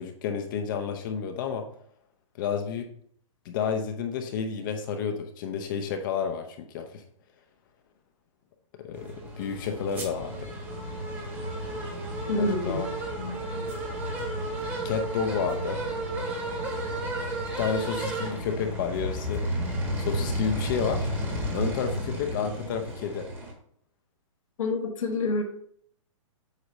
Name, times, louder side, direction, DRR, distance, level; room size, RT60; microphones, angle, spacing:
voice 1, 0.0-1.6 2.4-2.9 3.4-7.0 8.8-10.5 12.4-12.9 14.8-15.8 17.6-19.4 20.0-21.1 21.5-23.3, left 6 dB, 40° left, 5 dB, 0.7 m, -30 dB
sound 1, 8.9-23.5, right 1 dB, 10° right, 1.3 m, -32 dB
voice 2, 12.3-12.9 13.2-13.7 24.6-25.4, left 2 dB, 75° left, 4 dB, 1.3 m, -28 dB
8.1 x 2.8 x 5.3 m, 0.63 s
hypercardioid pair, 155°, 17 cm